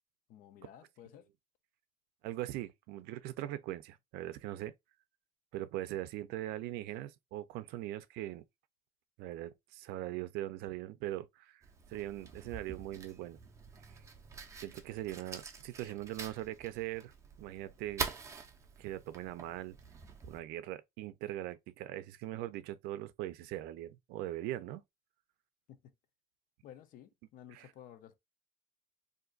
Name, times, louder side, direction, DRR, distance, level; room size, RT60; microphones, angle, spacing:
voice 1, 0.3-1.3 25.7-25.9 26.6-28.2, left 10 dB, 60° left, 0.5 m, -54 dB
voice 2, 2.2-4.7 5.5-8.4 9.2-13.4 14.6-17.1 17.4-18.1 18.8-19.8 20.2-24.8 27.5-27.7, right 14 dB, 80° right, 0.4 m, -41 dB
Fire, 11.6-20.4, right 5 dB, 20° right, 0.4 m, -46 dB
2.6 x 2.4 x 3.7 m
cardioid pair, 160°, 16 cm